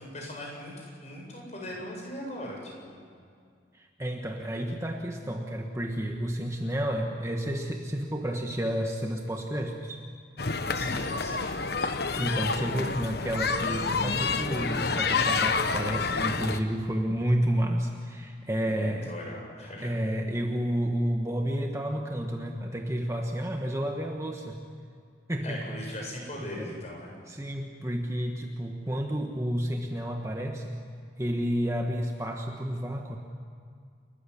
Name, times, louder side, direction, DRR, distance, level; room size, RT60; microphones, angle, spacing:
voice 1, 0.0-3.0 10.7-11.6 18.6-19.9 25.4-27.2, left 1 dB, 35° left, -1 dB, 7.9 m, -39 dB
voice 2, 3.7-10.0 12.1-19.1 19.8-24.6 25.3-25.7 26.4-26.7 27.3-30.8 31.2-33.2, equal, 15° right, 2 dB, 1.4 m, -30 dB
sound 1, 10.4-16.6, left 4 dB, 55° left, 1.1 m, -28 dB
29.0 x 14.5 x 10.0 m, 2.2 s
head